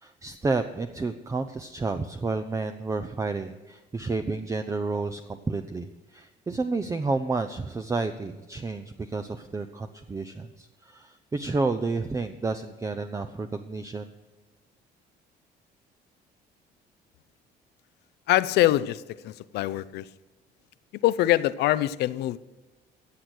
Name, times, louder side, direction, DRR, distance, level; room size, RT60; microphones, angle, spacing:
voice 1, 0.0-14.1, right 3 dB, 20° right, 8 dB, 0.6 m, -30 dB
voice 2, 18.3-20.1 21.0-22.4, left 15 dB, 75° left, 16 dB, 0.6 m, -24 dB
15.5 x 8.0 x 6.2 m, 1.2 s
cardioid pair, 110°, 17 cm